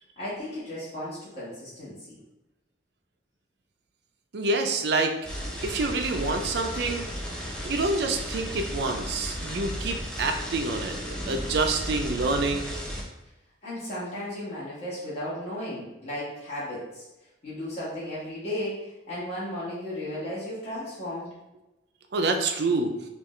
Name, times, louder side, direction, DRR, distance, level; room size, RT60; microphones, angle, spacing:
voice 1, 0.2-2.2 13.6-17.0 17.4-21.3, left 1 dB, 35° left, -10 dB, 1.5 m, -35 dB
voice 2, 4.3-5.1 5.6-7.1 7.6-11.0 11.3-12.8 22.1-22.9, right 3 dB, 60° right, 5 dB, 0.4 m, -27 dB
sound 1, 5.2-13.0, equal, 5° left, 0.5 m, -34 dB
3.7 x 2.4 x 3.1 m, 0.96 s
head